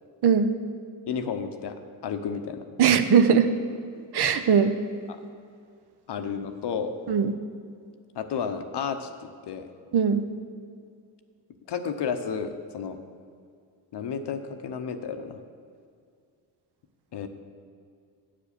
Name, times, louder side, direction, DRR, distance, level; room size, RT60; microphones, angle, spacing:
voice 1, 0.2-0.5 2.8-3.5 4.1-4.8 7.1-7.4 9.9-10.2, right 7 dB, 55° right, 9 dB, 0.7 m, -20 dB
voice 2, 1.1-1.8 2.0-2.7 5.2-5.3 6.1-6.9 8.1-9.7 11.7-13.0 13.9-15.4 17.1-17.3, left 6 dB, 55° left, 8 dB, 0.8 m, -32 dB
8.7 x 5.1 x 6.8 m, 2.3 s
supercardioid pair, 50°, 48 cm